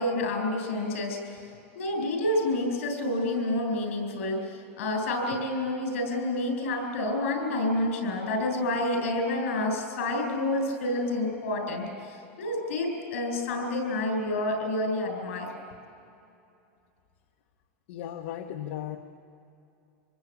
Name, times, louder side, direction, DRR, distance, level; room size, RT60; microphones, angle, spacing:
voice 1, 0.0-1.4 1.8-15.5, left 1 dB, 85° left, 4 dB, 7.1 m, -29 dB
voice 2, 17.9-19.0, left 10 dB, 65° left, 4 dB, 1.2 m, -36 dB
26.5 x 20.0 x 8.6 m, 2.6 s
supercardioid pair, 165°, 7 cm